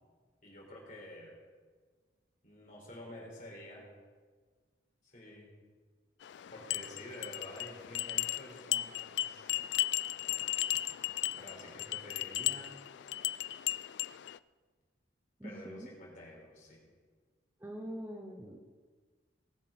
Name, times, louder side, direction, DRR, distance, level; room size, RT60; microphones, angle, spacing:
voice 1, 0.4-1.4 2.4-3.9 5.0-5.5 6.5-9.6 11.3-12.7 15.4-16.8, left 1 dB, 45° left, -3 dB, 4.5 m, -49 dB
sound 1, 6.2-14.4, left 14 dB, 65° left, 0.3 m, -36 dB
voice 2, 15.4-15.9 17.6-18.6, equal, 10° right, 2 dB, 0.9 m, -43 dB
19.0 x 7.4 x 5.9 m, 1.5 s
head